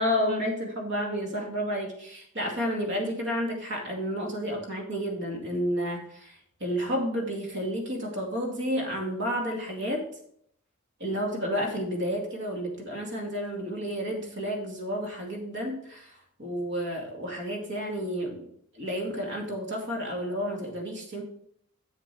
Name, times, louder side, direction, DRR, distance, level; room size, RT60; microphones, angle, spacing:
voice 1, 0.0-10.0 11.0-16.1 16.4-18.5 18.7-21.2, equal, 55° right, 1 dB, 2.3 m, -31 dB
7.7 x 7.2 x 4.4 m, 0.68 s
head